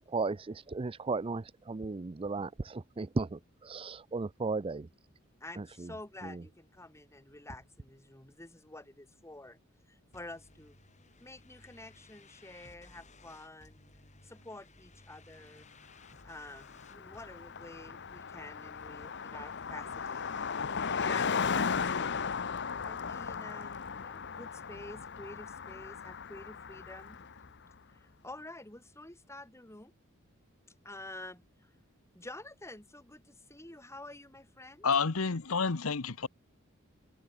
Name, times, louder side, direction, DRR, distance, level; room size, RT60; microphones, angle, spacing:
voice 1, 0.0-4.9 5.6-5.9 6.2-6.4, right 3 dB, 25° right, 0.4 m, -35 dB
voice 2, 5.4-9.6 9.9-10.7 11.2-13.8 14.2-15.7 16.2-20.3 20.9-22.3 22.8-27.2 27.9-29.9 30.8-31.7 32.1-34.9, left 2 dB, 15° left, 2.9 m, -49 dB
sound 1, 10.1-22.4, left 2 dB, 35° left, 6.6 m, -59 dB
Car passing by, 16.2-16.3 16.5-27.5, left 6 dB, 55° left, 1.0 m, -36 dB
voice 3, 34.8-36.3, left 5 dB, 90° left, 1.1 m, -29 dB
head